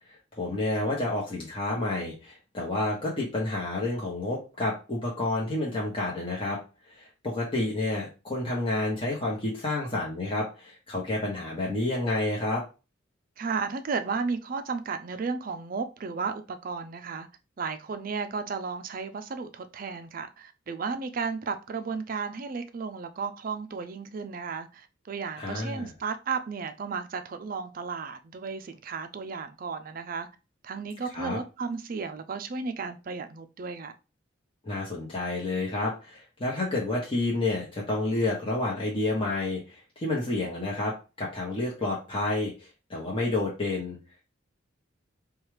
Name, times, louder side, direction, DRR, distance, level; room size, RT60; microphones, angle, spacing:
voice 1, 0.3-6.6 6.9-12.6 25.4-25.9 31.1-31.4 34.6-42.5 42.9-44.0, left 2 dB, 25° left, 1.0 m, -29 dB
voice 2, 13.4-17.3 17.6-30.3 30.6-33.9, right 5 dB, 45° right, 0.4 m, -34 dB
4.6 x 2.4 x 3.2 m
head